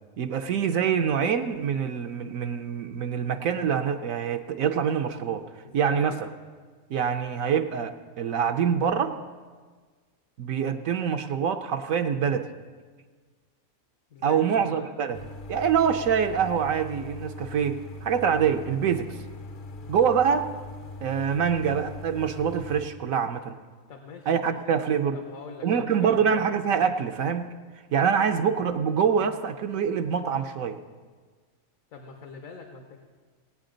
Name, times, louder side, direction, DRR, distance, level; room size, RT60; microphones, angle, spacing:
voice 1, 0.2-5.4 5.7-6.1 6.9-9.2 10.4-12.5 14.2-15.2 15.5-19.2 19.9-20.5 21.0-23.6 24.3-25.2 25.6-27.6 27.9-30.8, right 7 dB, 75° right, 6 dB, 1.0 m, -25 dB
voice 2, 5.6-6.2 14.1-14.9 23.9-24.5 25.1-26.4 31.9-33.0, left 5 dB, 70° left, 3 dB, 1.4 m, -43 dB
sound 1, 15.1-22.9, left 2 dB, 50° left, 0.7 m, -41 dB
18.0 x 9.1 x 3.8 m, 1.5 s
omnidirectional pair, 1.5 m